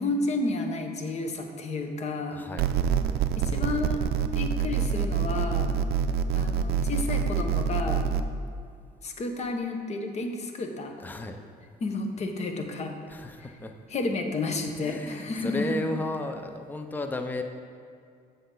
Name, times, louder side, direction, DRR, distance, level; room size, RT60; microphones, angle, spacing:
voice 1, 0.0-2.4 3.4-4.0 4.3-5.8 6.3-8.1 9.0-10.9 11.8-12.9 13.9-15.6, left 3 dB, 40° left, 5 dB, 0.9 m, -31 dB
voice 2, 2.3-2.7 11.0-11.4 13.1-13.7 14.8-17.4, left 1 dB, 10° left, 6 dB, 0.5 m, -33 dB
sound 1, 2.6-8.2, right 7 dB, 70° right, 0.4 m, -26 dB
7.8 x 6.6 x 3.8 m, 2.3 s
cardioid pair, 110°, 17 cm